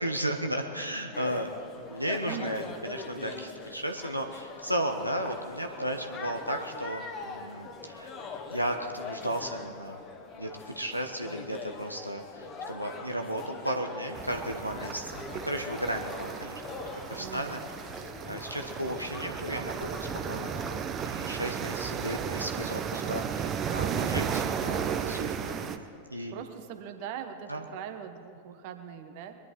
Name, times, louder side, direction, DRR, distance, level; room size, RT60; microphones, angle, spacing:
voice 1, 0.0-8.1 8.5-10.0 10.4-15.1 15.4-16.6 17.1-17.6 18.3-20.0 20.2-20.8 21.0-25.6 26.1-26.3 27.5-27.6, right 1 dB, 90° right, 3 dB, 1.0 m, -34 dB
sound 1, 1.1-20.8, left 4 dB, 30° left, 1.4 m, -43 dB
sound 2, 14.1-25.8, right 7 dB, 30° right, 0.9 m, -34 dB
voice 2, 17.2-17.6 23.9-24.2 26.3-29.4, right 9 dB, 45° right, 7 dB, 1.2 m, -40 dB
22.0 x 11.0 x 4.5 m, 2.7 s
figure-of-eight pair, 90°, 0 cm